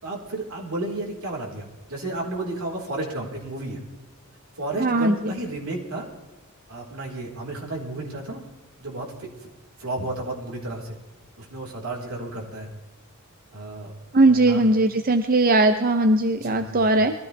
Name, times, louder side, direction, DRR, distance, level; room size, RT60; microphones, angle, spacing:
voice 1, 0.0-3.8 4.6-6.1 6.7-8.4 8.8-9.3 9.8-11.0 11.4-12.7 13.5-13.9 14.3-14.7 16.4-17.0, right 2 dB, 80° right, -1 dB, 4.2 m, -32 dB
voice 2, 4.8-5.1 14.1-17.1, right 2 dB, 40° right, 8 dB, 0.7 m, -19 dB
22.0 x 14.5 x 3.4 m, 1.2 s
head